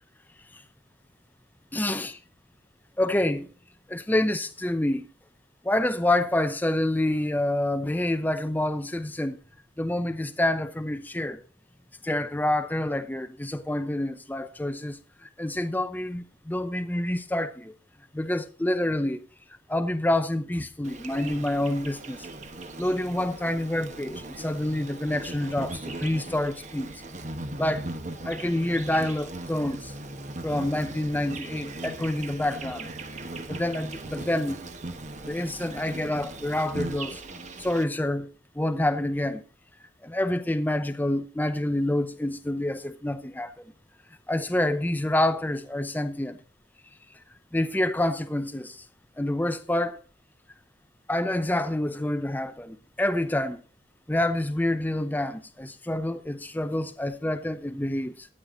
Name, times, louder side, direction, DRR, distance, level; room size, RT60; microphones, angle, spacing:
voice 1, 1.7-2.2 3.0-3.5 3.9-5.1 5.6-9.4 9.8-11.4 12.0-17.7 18.1-19.2 19.7-22.3 22.8-26.9 27.6-27.9 28.2-29.9 30.4-32.9 33.5-34.6 35.3-37.2 37.6-38.3 38.5-39.4 40.0-43.5 44.3-46.4 47.5-48.8 49.2-50.0 51.1-53.6 54.1-58.3, left 1 dB, 10° left, 0.6 m, -27 dB
Insect, 20.8-37.8, right 2 dB, 40° right, 1.3 m, -38 dB
13.0 x 8.9 x 3.9 m
head